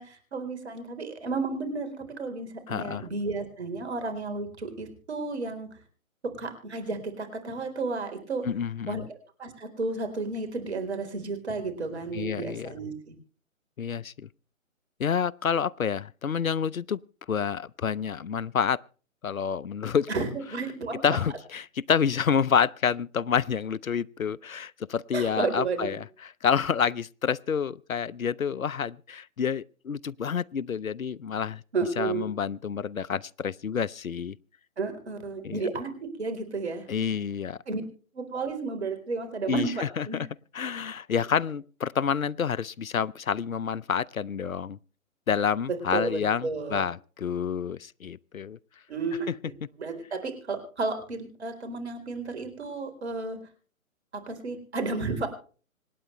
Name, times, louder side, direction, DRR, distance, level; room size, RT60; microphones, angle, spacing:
voice 1, 0.0-5.8 6.2-8.5 8.9-13.1 20.1-21.2 25.1-26.0 31.7-32.3 34.8-36.9 37.7-37.8 38.1-40.2 45.9-46.8 48.9-53.4 54.1-55.3, right 3 dB, 50° right, 4.2 m, -32 dB
voice 2, 2.7-3.1 8.5-9.1 12.1-12.7 13.8-14.3 15.0-17.0 17.3-18.8 19.2-20.1 21.0-31.6 32.0-34.4 35.4-35.6 36.9-37.6 39.5-40.1 40.5-44.8 45.3-48.6, left 7 dB, 75° left, 0.6 m, -28 dB
26.0 x 9.5 x 3.3 m
figure-of-eight pair, 140°, 41 cm